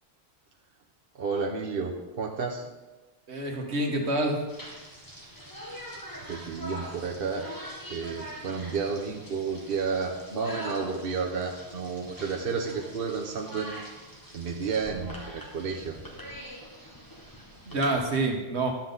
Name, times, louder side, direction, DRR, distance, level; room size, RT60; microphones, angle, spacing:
voice 1, 1.2-2.6 6.3-7.5 7.9-13.7 14.3-16.0, right 5 dB, 60° right, 0 dB, 1.1 m, -31 dB
voice 2, 3.3-4.4 17.7-18.7, right 2 dB, 80° right, 2 dB, 1.7 m, -27 dB
sound 1, 4.5-18.0, equal, 20° left, 1.5 m, -43 dB
12.0 x 7.6 x 3.9 m, 1.1 s
omnidirectional pair, 1.1 m